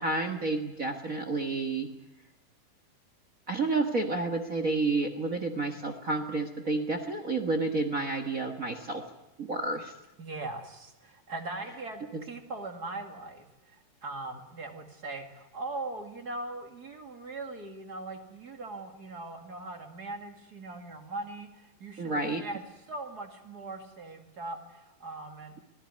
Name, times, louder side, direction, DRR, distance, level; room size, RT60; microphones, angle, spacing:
voice 1, 0.0-1.9 3.5-9.0 9.4-9.9 22.0-22.4, right 3 dB, 65° right, 6 dB, 0.8 m, -30 dB
voice 2, 10.2-25.6, right 2 dB, 30° right, 5 dB, 2.2 m, -40 dB
24.5 x 17.5 x 9.7 m, 0.98 s
omnidirectional pair, 4.0 m